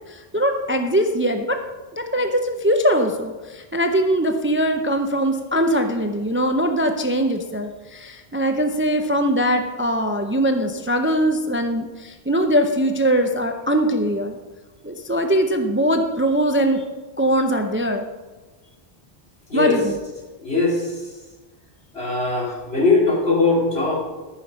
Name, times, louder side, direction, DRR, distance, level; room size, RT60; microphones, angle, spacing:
voice 1, 0.1-1.6 1.9-14.4 14.8-16.8 17.2-18.1 19.5-20.0, equal, 15° right, 5 dB, 0.5 m, -21 dB
voice 2, 19.5-19.9 20.4-21.0 21.9-24.0, left 3 dB, 75° left, -3 dB, 3.0 m, -20 dB
14.0 x 5.8 x 5.2 m, 1.2 s
omnidirectional pair, 1.1 m